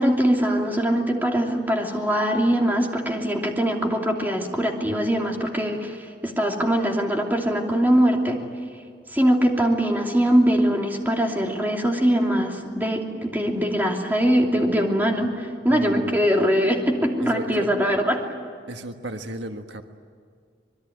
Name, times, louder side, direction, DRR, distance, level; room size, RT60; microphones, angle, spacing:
voice 1, 0.0-8.4 9.1-18.2, equal, 10° right, 1 dB, 3.0 m, -22 dB
voice 2, 15.7-16.2 17.2-17.7 18.7-19.8, right 1 dB, 80° right, 6 dB, 1.5 m, -34 dB
26.0 x 21.5 x 9.5 m, 2.1 s
head